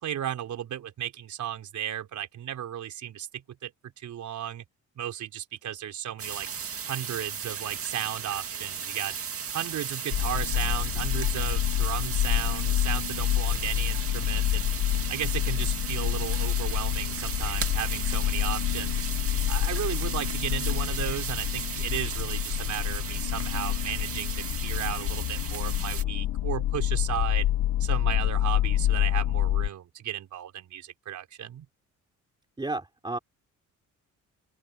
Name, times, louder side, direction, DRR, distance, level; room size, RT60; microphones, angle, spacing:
voice 1, 0.0-3.7 4.0-4.6 5.0-6.5 6.8-9.2 9.5-14.7 15.1-19.1 19.5-27.5 27.8-31.7, right 11 dB, 70° right, 4.5 m, -35 dB
sound 1, 6.2-26.0, right 7 dB, 50° right, 2.1 m, -36 dB
sound 2, 10.1-29.7, left 13 dB, 75° left, 0.8 m, -28 dB
voice 2, 32.6-33.2, right 2 dB, 15° right, 3.5 m, -32 dB
open air
cardioid pair, 105°, 31 cm